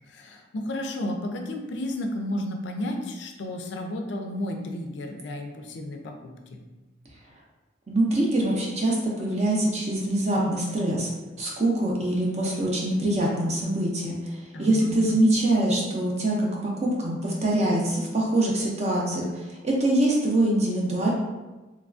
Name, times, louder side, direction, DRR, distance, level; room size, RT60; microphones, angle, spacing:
voice 1, 0.1-6.6 14.5-15.2, left 1 dB, 65° left, 4 dB, 0.4 m, -32 dB
voice 2, 7.9-11.1 11.4-14.2 14.6-19.3 19.6-21.1, right 1 dB, 35° right, -3 dB, 0.5 m, -24 dB
3.1 x 2.3 x 2.4 m, 1.2 s
head